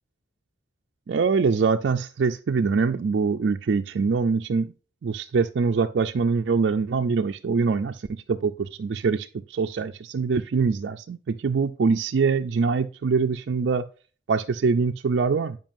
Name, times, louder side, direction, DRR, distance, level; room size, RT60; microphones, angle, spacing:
voice 1, 1.1-4.7 5.0-13.8 14.3-15.6, right 5 dB, 60° right, 5 dB, 0.4 m, -24 dB
9.0 x 5.3 x 2.6 m, 0.36 s
head